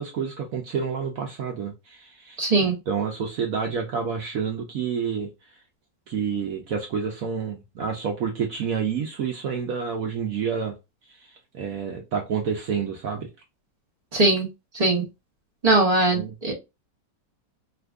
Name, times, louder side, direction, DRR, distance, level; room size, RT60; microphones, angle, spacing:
voice 1, 0.0-5.3 6.1-10.7 11.1-13.3 16.1-16.3, right 6 dB, 65° right, 0.9 m, -29 dB
voice 2, 2.4-2.7 14.1-14.5 14.7-15.0 15.6-16.5, right 2 dB, 35° right, 0.6 m, -20 dB
2.8 x 2.5 x 3.4 m
omnidirectional pair, 1.9 m